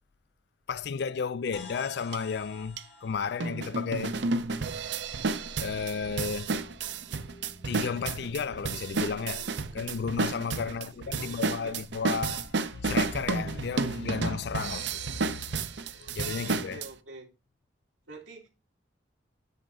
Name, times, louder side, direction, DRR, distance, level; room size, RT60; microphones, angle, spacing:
voice 1, 0.7-4.2 5.6-6.5 7.6-15.6 15.9-16.8, left 5 dB, 60° left, 0.4 m, -33 dB
sound 1, 1.5-5.3, left 3 dB, 75° left, 1.8 m, -51 dB
sound 2, 2.1-2.2 2.8-2.9 3.4-16.9, right 4 dB, 65° right, 0.6 m, -31 dB
sound 3, 3.9-13.8, left 1 dB, 25° left, 0.8 m, -51 dB
voice 2, 10.6-11.8 16.4-17.3 18.1-18.5, right 2 dB, 85° right, 2.5 m, -47 dB
9.5 x 4.3 x 5.3 m
head